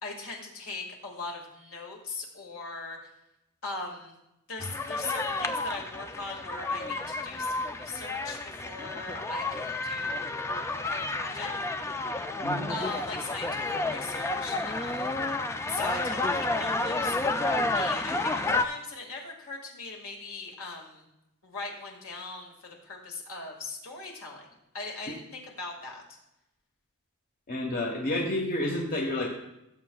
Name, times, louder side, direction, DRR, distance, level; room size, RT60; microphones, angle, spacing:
voice 1, 0.0-3.0 3.6-4.1 4.5-11.5 12.7-15.1 15.7-21.1 21.4-24.5 24.7-26.0, left 3 dB, 65° left, 1 dB, 2.0 m, -40 dB
sound 1, 4.6-18.7, left 2 dB, 10° left, 0.3 m, -31 dB
voice 2, 27.5-29.3, left 1 dB, 40° left, 0 dB, 1.2 m, -29 dB
16.5 x 7.4 x 2.3 m, 0.87 s
head